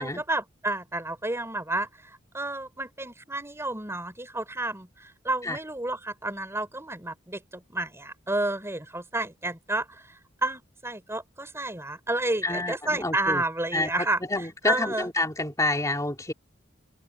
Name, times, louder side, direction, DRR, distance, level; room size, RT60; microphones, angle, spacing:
voice 1, 0.0-15.1, right 2 dB, 15° right, 4.2 m, -31 dB
voice 2, 12.4-13.4 13.7-16.3, left 2 dB, 15° left, 3.4 m, -28 dB
open air
head